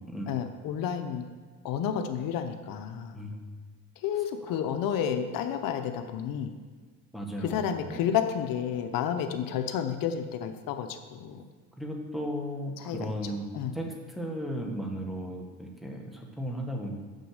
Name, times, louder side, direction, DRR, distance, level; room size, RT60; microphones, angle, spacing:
voice 1, 0.3-1.3 1.6-3.2 4.0-6.5 7.4-11.4 12.8-13.8, left 8 dB, 70° left, 7 dB, 0.8 m, -31 dB
voice 2, 7.1-8.1 11.8-13.5 13.7-17.0, equal, ahead, 0 dB, 1.5 m, -35 dB
6.5 x 6.2 x 6.5 m, 1.5 s
cardioid pair, 100°, 35 cm